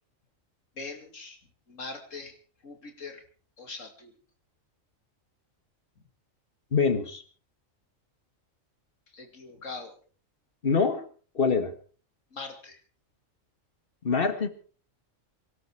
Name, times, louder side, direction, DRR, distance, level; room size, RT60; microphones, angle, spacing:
voice 1, 0.8-1.4 1.7-2.3 2.6-3.2 3.6-4.1 9.1-9.9 12.3-12.8, left 3 dB, 70° left, 5 dB, 3.1 m, -41 dB
voice 2, 6.7-7.2 10.6-11.1 11.4-11.7 14.0-14.5, left 5 dB, 45° left, 10 dB, 1.9 m, -24 dB
23.5 x 12.5 x 4.8 m, 0.41 s
omnidirectional pair, 1.4 m